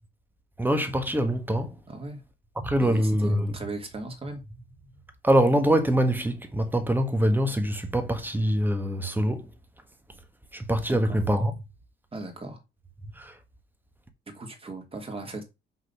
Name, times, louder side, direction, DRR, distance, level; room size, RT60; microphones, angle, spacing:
voice 1, 0.6-1.8 2.6-3.6 5.2-9.5 10.5-11.5 13.1-13.4, right 1 dB, 10° right, 1.5 m, -24 dB
voice 2, 1.9-2.2 2.8-4.4 10.9-11.2 12.1-12.6 14.3-15.4, right 3 dB, 30° right, 2.6 m, -37 dB
6.0 x 4.1 x 5.8 m
cardioid pair, 90°, 20 cm